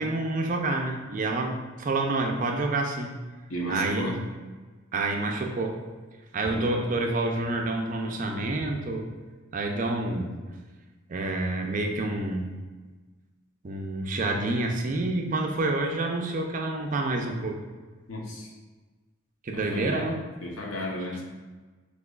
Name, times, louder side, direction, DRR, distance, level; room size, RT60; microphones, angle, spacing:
voice 1, 0.0-3.1 3.7-4.1 4.9-5.8 6.3-9.1 9.5-10.4 11.1-12.6 13.6-17.6 19.4-20.2, right 2 dB, 40° right, 2 dB, 0.5 m, -28 dB
voice 2, 3.5-4.2 6.5-6.7 18.1-18.5 19.5-20.1 20.4-21.2, equal, 90° left, -1 dB, 0.9 m, -33 dB
6.3 x 2.8 x 2.3 m, 1.3 s
head